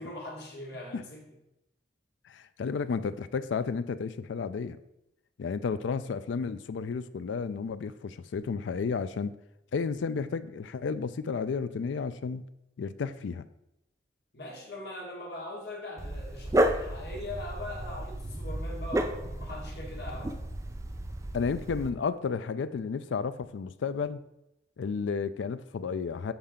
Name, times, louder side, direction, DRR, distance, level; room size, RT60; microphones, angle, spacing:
voice 1, 0.0-1.3 14.3-20.4, left 1 dB, 60° left, -2 dB, 1.6 m, -41 dB
voice 2, 2.3-4.8 5.4-9.3 9.7-12.4 12.8-13.5 21.3-24.2 24.8-26.3, left 5 dB, 90° left, 13 dB, 0.4 m, -32 dB
Dog, 16.0-21.9, right 1 dB, 15° right, 0.4 m, -32 dB
7.2 x 4.3 x 3.7 m, 0.89 s
head